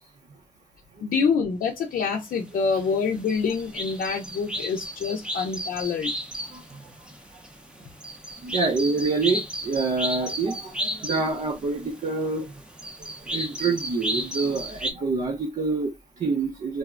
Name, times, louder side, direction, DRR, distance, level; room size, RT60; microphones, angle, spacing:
voice 1, 1.0-6.1, left 5 dB, 85° left, 0.5 m, -26 dB
sound 1, 2.3-14.9, equal, 5° right, 0.5 m, -34 dB
voice 2, 6.5-6.9 7.3-7.4 8.4-12.6 13.0-16.8, right 4 dB, 55° right, 0.6 m, -27 dB
3.3 x 2.1 x 2.3 m
wide cardioid pair, 145°, 14 cm